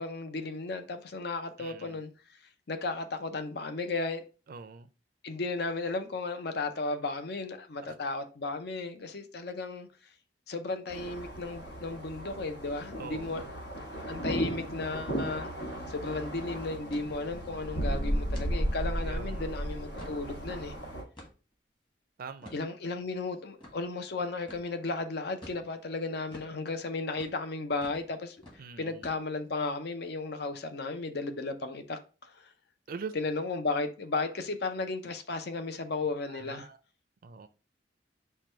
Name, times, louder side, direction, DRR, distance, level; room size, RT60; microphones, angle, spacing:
voice 1, 0.0-2.1 2.7-4.2 5.2-9.9 10.5-15.5 15.9-20.7 22.5-28.4 28.8-32.5 33.1-36.7, left 3 dB, 65° left, 0.6 m, -34 dB
voice 2, 1.6-2.0 4.5-4.9 13.0-13.4 19.0-19.5 22.2-22.5 28.6-29.1 32.9-33.1 36.3-36.8 37.2-37.5, right 5 dB, 55° right, 0.4 m, -43 dB
sound 1, 10.9-21.0, equal, 85° left, 1.3 m, -35 dB
sound 2, 14.9-15.2 15.5-15.6 15.9-16.2 16.9-17.1 17.6-17.7 18.3-18.5 19.1-19.2 19.7-20.3 21.2-21.5 22.4-22.6 23.6-23.8 24.5-24.7 25.4-25.7 26.3-26.5 27.1-27.4 27.8-28.1 28.4-28.6 29.0-29.5, left 1 dB, 30° left, 1.4 m, -49 dB
4.6 x 2.2 x 4.3 m
head